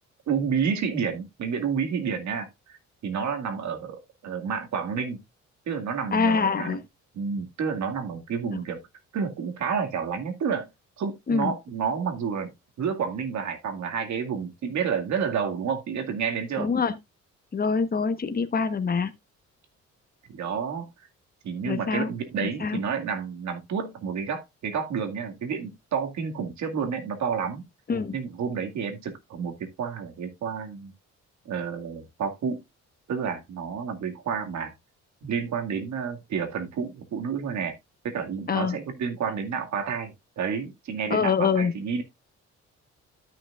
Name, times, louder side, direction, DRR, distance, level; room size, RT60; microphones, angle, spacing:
voice 1, 0.3-2.8 3.0-5.2 5.7-6.8 7.1-8.8 9.1-10.7 11.0-12.5 12.8-16.7 20.3-20.9 21.4-27.7 28.1-30.9 31.5-32.6 33.1-34.7 35.2-37.7 38.0-42.0, right 6 dB, 65° right, 2.1 m, -30 dB
voice 2, 6.1-6.8 8.5-8.6 11.3-11.5 16.6-17.0 17.5-19.1 21.7-22.1 22.4-22.8 27.9-28.1 38.5-38.8 41.1-41.7, left 5 dB, 30° left, 1.1 m, -25 dB
13.0 x 6.0 x 2.4 m
cardioid pair, 90°, 30 cm